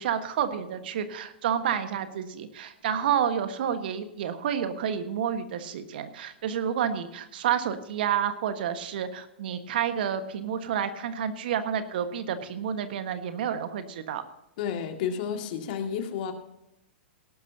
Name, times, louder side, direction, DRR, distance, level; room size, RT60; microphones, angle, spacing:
voice 1, 0.0-14.2, right 8 dB, 60° right, 9 dB, 1.4 m, -29 dB
voice 2, 14.6-16.3, left 7 dB, 50° left, 5 dB, 2.0 m, -31 dB
18.0 x 12.0 x 2.8 m, 0.84 s
figure-of-eight pair, 110°, 6 cm